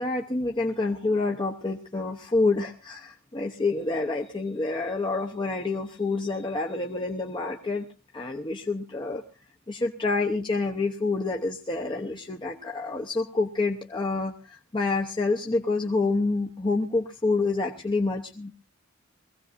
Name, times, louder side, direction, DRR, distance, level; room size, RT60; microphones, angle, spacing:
voice 1, 0.0-7.9 8.1-9.2 9.7-18.5, left 3 dB, 25° left, 0 dB, 0.9 m, -28 dB
22.0 x 16.5 x 2.6 m, 0.33 s
head